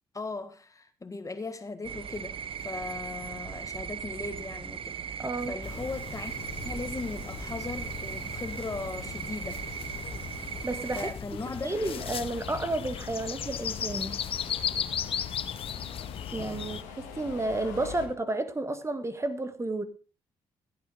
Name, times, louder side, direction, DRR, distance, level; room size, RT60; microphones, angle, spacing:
voice 1, 0.1-6.3 6.6-9.6 10.9-11.7, left 3 dB, 30° left, 1.6 m, -38 dB
sound 1, 1.8-11.1, right 8 dB, 50° right, 0.7 m, -38 dB
voice 2, 5.2-5.5 10.6-11.1 11.6-14.2 16.3-19.8, right 2 dB, 25° right, 1.5 m, -31 dB
sound 2, 5.6-16.8, left 8 dB, 50° left, 0.7 m, -37 dB
Subway metro underground, 11.3-18.1, left 7 dB, 85° left, 1.7 m, -45 dB
15.5 x 8.7 x 3.7 m
hypercardioid pair, 50°, 12 cm